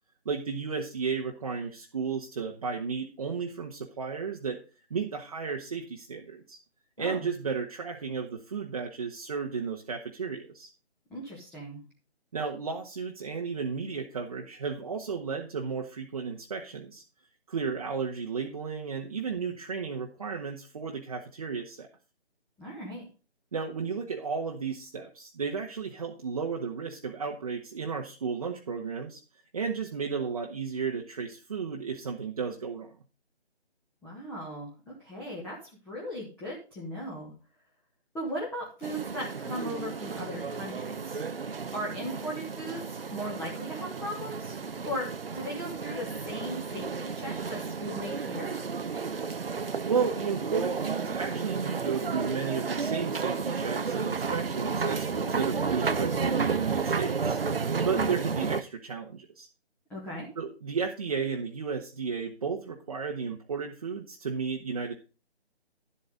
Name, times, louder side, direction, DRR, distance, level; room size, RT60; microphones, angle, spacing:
voice 1, 0.2-4.6 4.9-6.6 7.0-10.7 12.3-17.0 17.5-21.9 23.5-29.2 29.5-32.9 49.8-57.4 57.8-59.5 60.4-64.9, right 5 dB, 35° right, 0 dB, 1.3 m, -33 dB
voice 2, 7.0-7.3 11.1-11.8 22.6-23.1 34.0-35.6 35.8-37.3 38.1-41.2 41.7-44.5 44.8-45.1 45.3-48.6 59.9-60.3, equal, 5° left, -6 dB, 1.3 m, -37 dB
sound 1, 38.8-58.6, right 5 dB, 55° right, 1.0 m, -32 dB
12.0 x 8.3 x 3.9 m, 0.33 s
figure-of-eight pair, 160°, 33 cm